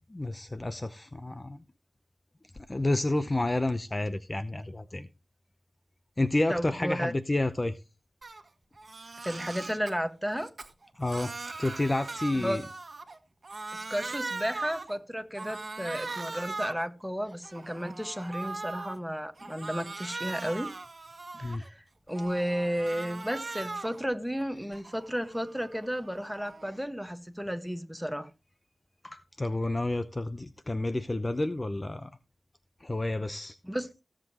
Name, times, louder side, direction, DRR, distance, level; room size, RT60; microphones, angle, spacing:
voice 1, 0.1-1.6 2.7-5.1 6.2-7.8 11.0-12.6 21.4-21.6 29.0-32.1 32.8-33.5, left 2 dB, 25° left, 0.7 m, -30 dB
voice 2, 6.5-7.1 9.2-10.5 12.4-12.6 13.7-20.7 21.3-28.3 33.6-33.9, equal, ahead, 1.4 m, -33 dB
Crying sobbing, 8.2-8.4 8.8-9.9 10.4-13.2 13.4-15.0 15.4-16.9 17.3-19.0 19.4-21.7 22.1-24.0 24.4-26.8, right 3 dB, 45° right, 1.6 m, -40 dB
16.5 x 7.6 x 3.0 m
cardioid pair, 65°, 0 cm